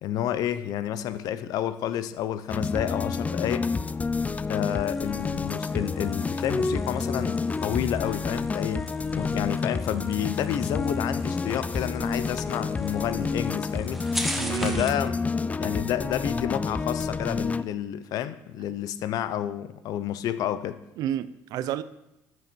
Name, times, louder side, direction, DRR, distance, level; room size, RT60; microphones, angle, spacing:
voice 1, 0.0-3.7 4.5-14.0 14.6-15.2 15.6-20.8, left 11 dB, 65° left, 0.6 m, -30 dB
sound 1, 2.5-17.6, left 4 dB, 20° left, 0.4 m, -29 dB
sound 2, 4.4-15.1, equal, ahead, 1.1 m, -41 dB
voice 2, 14.4-14.9 21.0-21.8, right 10 dB, 65° right, 0.6 m, -30 dB
12.5 x 6.3 x 4.5 m
supercardioid pair, 80°, 7 cm